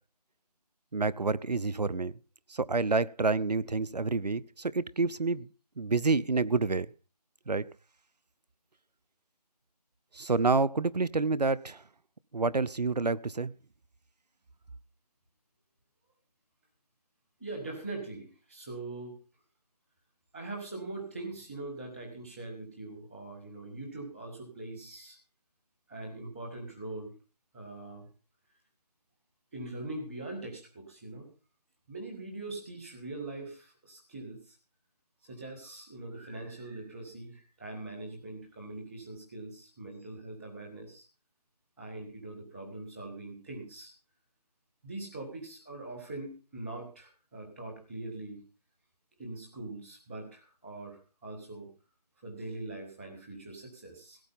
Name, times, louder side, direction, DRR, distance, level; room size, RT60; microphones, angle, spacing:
voice 1, 0.9-2.1 2.5-5.5 5.8-6.9 7.5-7.7 10.1-11.8 12.3-13.5, right 3 dB, 90° right, 0.7 m, -28 dB
voice 2, 17.4-19.2 20.3-25.2 25.9-27.1 27.5-28.1 29.5-31.3 31.9-34.6 35.3-41.0 41.8-43.9 44.8-48.4 49.2-51.7 52.2-54.2, right 2 dB, ahead, 0.6 m, -42 dB
17.0 x 7.8 x 5.6 m
figure-of-eight pair, 165°, 20 cm